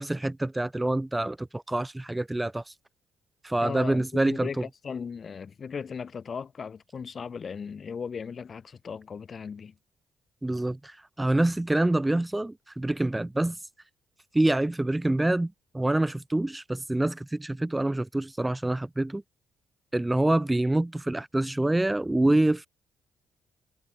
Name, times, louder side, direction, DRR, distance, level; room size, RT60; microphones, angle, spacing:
voice 1, 0.0-2.7 3.4-4.6 10.4-13.6 14.3-19.2 19.9-22.7, right 1 dB, 10° right, 0.4 m, -26 dB
voice 2, 3.6-9.7, left 6 dB, 45° left, 1.3 m, -37 dB
cardioid pair, 90°, 0 cm